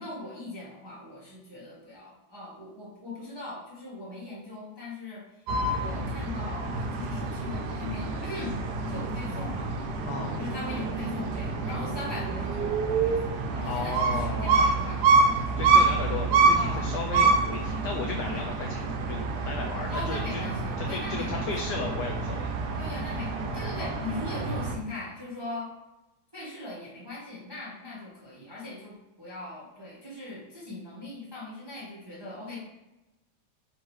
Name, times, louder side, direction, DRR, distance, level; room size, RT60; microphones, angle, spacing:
voice 1, 0.0-5.2 5.7-9.8 10.4-15.8 16.5-16.9 19.9-21.5 22.8-25.7 26.3-32.6, left 2 dB, 20° right, -7 dB, 0.7 m, -40 dB
sound 1, 5.5-24.8, right 4 dB, 75° right, 0.9 m, -27 dB
voice 2, 13.6-14.6 15.6-20.4 20.9-22.5 23.8-23.9, left 5 dB, 75° left, 1 dB, 1.0 m, -35 dB
4.5 x 3.5 x 3.2 m, 1.0 s
omnidirectional pair, 2.2 m